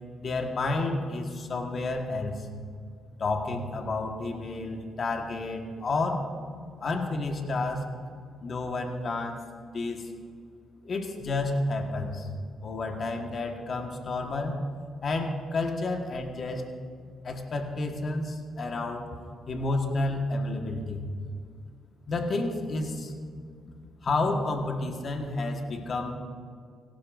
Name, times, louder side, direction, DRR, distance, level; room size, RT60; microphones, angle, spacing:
voice 1, 0.2-2.5 3.2-6.2 6.5-7.9 8.4-9.4 9.6-10.1 10.8-12.3 12.6-14.6 15.0-16.6 17.2-19.1 19.5-21.1 22.1-23.1 24.0-26.2, left 2 dB, 45° left, 3 dB, 1.5 m, -30 dB
17.5 x 17.0 x 2.6 m, 2.1 s
cardioid pair, 90°, 0 cm